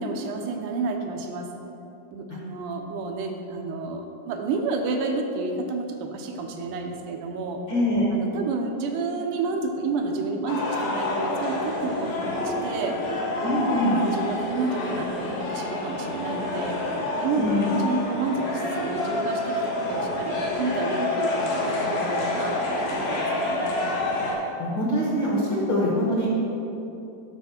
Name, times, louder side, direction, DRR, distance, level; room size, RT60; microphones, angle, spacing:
voice 1, 0.0-1.5 2.1-7.6 8.1-23.8, right 3 dB, 85° right, 3 dB, 2.3 m, -30 dB
voice 2, 7.7-8.1 13.4-14.0 17.3-17.7 24.6-26.4, equal, 50° left, -5 dB, 1.5 m, -24 dB
sound 1, 10.5-24.3, left 2 dB, 80° left, 2.9 m, -28 dB
9.6 x 6.7 x 4.3 m, 2.9 s
omnidirectional pair, 3.6 m